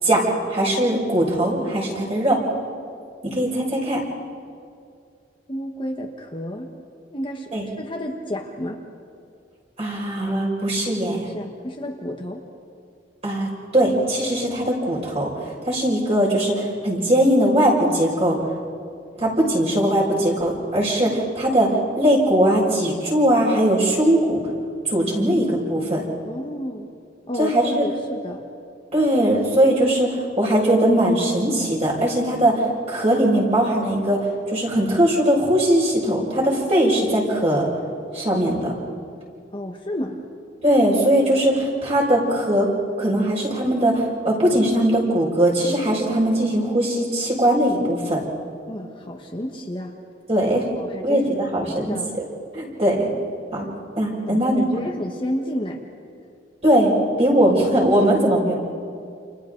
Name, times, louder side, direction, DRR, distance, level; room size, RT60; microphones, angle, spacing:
voice 1, 0.0-2.4 3.2-4.0 7.5-7.6 9.8-11.3 13.2-18.4 19.2-24.4 24.8-26.0 27.4-27.8 28.9-30.1 30.4-34.2 34.5-37.7 38.1-38.7 40.6-42.7 43.0-48.2 50.3-50.6 51.0-52.2 52.5-53.1 53.5-53.7 54.0-54.6 56.6-58.5, right 1 dB, 35° right, -4 dB, 6.1 m, -20 dB
voice 2, 5.5-6.7 7.1-7.5 7.8-8.8 11.2-12.4 26.2-26.9 27.3-28.4 39.5-40.2 48.7-50.0 50.7-51.4 51.8-52.1 54.3-55.8, equal, 25° left, 1 dB, 1.4 m, -31 dB
29.5 x 29.0 x 4.0 m, 2.3 s
head